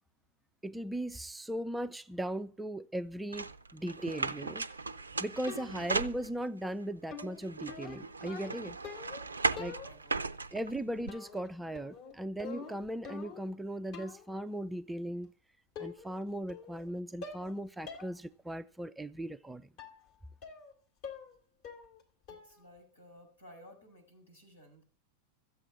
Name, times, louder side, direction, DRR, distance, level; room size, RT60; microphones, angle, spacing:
voice 1, 0.6-4.6 5.2-8.8 9.6-9.8 10.5-15.3 15.8-19.6, right 1 dB, 5° right, 0.5 m, -38 dB
sound 1, 3.3-6.7 7.2-11.1, right 3 dB, 75° right, 0.5 m, -37 dB
sound 2, 5.5-6.0 7.1-9.3 9.6-10.2 11.1-11.5 11.8-13.6 13.9-14.3 15.2-15.3 15.8-16.2 16.5-16.9 17.2-17.5 17.9-18.1 18.5-18.6 19.8-20.0 20.4-20.7 21.0-21.4 21.6-22.0 22.3-22.6, left 5 dB, 45° left, 3.1 m, -46 dB
voice 2, 9.8-10.6 22.3-24.8, equal, 75° left, 6.1 m, -57 dB
14.0 x 8.4 x 7.1 m
figure-of-eight pair, 90°, 0 cm